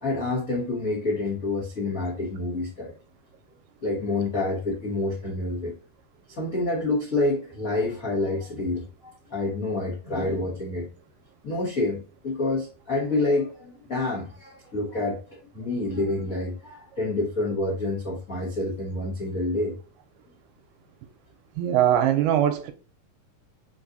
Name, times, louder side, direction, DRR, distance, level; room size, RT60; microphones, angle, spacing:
voice 1, 0.0-2.9 3.8-5.7 6.3-10.9 11.4-19.7, left 2 dB, 70° left, 0.8 m, -28 dB
voice 2, 21.6-22.7, right 11 dB, 80° right, 2.0 m, -21 dB
4.5 x 3.9 x 2.6 m
omnidirectional pair, 4.0 m